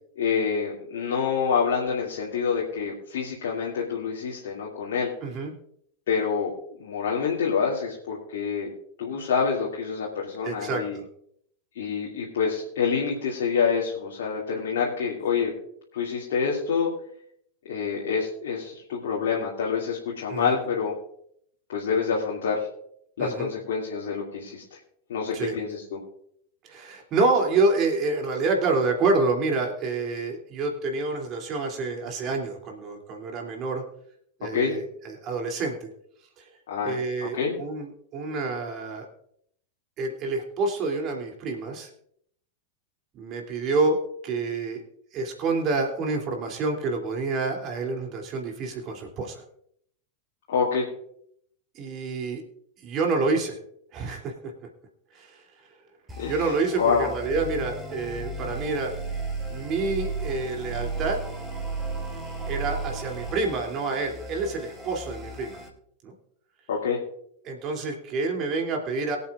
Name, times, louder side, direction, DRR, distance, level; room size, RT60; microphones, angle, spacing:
voice 1, 0.2-5.1 6.1-6.5 6.8-8.7 9.0-11.0 11.7-15.5 15.9-16.9 17.7-20.9 21.7-22.7 23.2-24.8 25.1-26.0 34.5-34.8 36.7-37.0 37.3-37.5 50.5-50.9 56.2-57.1 66.7-67.0, left 6 dB, 55° left, -4 dB, 2.5 m, -27 dB
voice 2, 5.2-5.5 10.4-11.0 20.3-20.6 23.2-23.5 25.3-25.6 26.6-33.8 34.4-35.9 36.4-36.5 36.8-39.1 40.0-41.9 43.1-44.8 45.1-49.4 51.7-52.4 52.8-53.6 53.9-54.5 55.1-55.4 56.3-58.9 59.5-61.3 62.5-65.6 66.0-66.1 67.4-69.2, right 3 dB, 35° right, 1 dB, 3.0 m, -28 dB
sound 1, 56.1-65.7, right 2 dB, 15° right, 3.2 m, -35 dB
23.0 x 8.2 x 2.5 m, 0.69 s
figure-of-eight pair, 90°, 0 cm